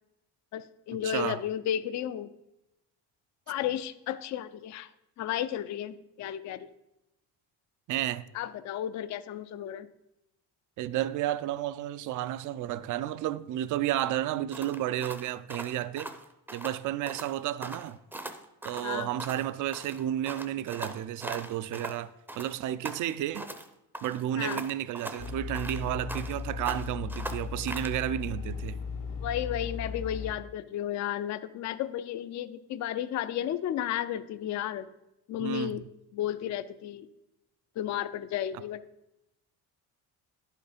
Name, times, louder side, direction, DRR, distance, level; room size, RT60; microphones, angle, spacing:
voice 1, 0.5-2.3 3.5-4.9 5.2-6.7 8.3-9.9 18.8-19.1 24.4-24.6 29.2-34.9 35.3-35.8 36.1-37.1 37.8-38.8, left 11 dB, 50° left, 0.4 m, -33 dB
voice 2, 1.0-1.4 7.9-8.3 10.8-16.1 16.5-18.0 18.6-23.5 24.0-28.8 35.4-35.8, right 12 dB, 55° right, 0.5 m, -32 dB
sound 1, 14.5-16.8 17.1-17.3 17.6-19.5 19.7-22.0 22.3-23.7 23.9-26.4 26.6-28.0, right 1 dB, 5° right, 0.6 m, -40 dB
sound 2, 25.2-30.3, left 5 dB, 75° left, 1.9 m, -37 dB
10.5 x 5.7 x 5.1 m
cardioid pair, 145°, 38 cm